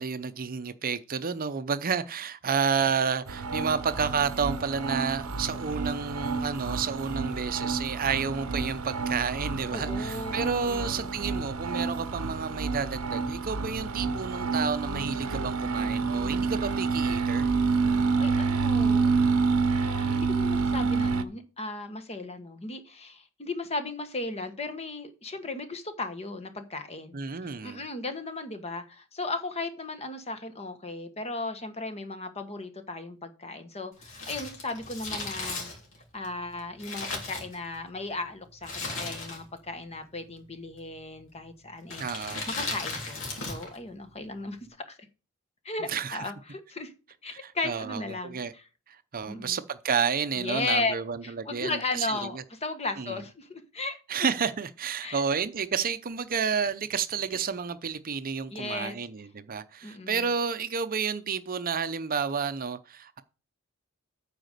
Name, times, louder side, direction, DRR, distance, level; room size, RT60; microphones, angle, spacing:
voice 1, 0.0-17.5 27.1-27.8 42.0-42.4 45.9-46.2 47.3-48.5 48.9-52.4 53.0-53.2 54.1-63.2, right 6 dB, 40° right, 0.7 m, -30 dB
sound 1, 3.3-21.2, right 4 dB, 80° right, 0.8 m, -28 dB
voice 2, 9.7-11.2 17.9-19.1 19.7-27.2 27.4-35.7 36.1-42.0 42.5-43.2 43.5-44.6 44.9-45.0 45.6-46.9 47.2-48.6 49.3-49.6 50.4-51.0 51.2-54.0 55.0-55.2 58.5-59.0 59.8-60.2, left 2 dB, 30° left, 1.3 m, -36 dB
Crumpling crinkling, 34.0-38.0 38.6-39.7 39.9-40.0 40.8-41.2 41.8-43.8 44.0-44.1, left 3 dB, 65° left, 3.5 m, -36 dB
9.1 x 5.0 x 6.6 m
head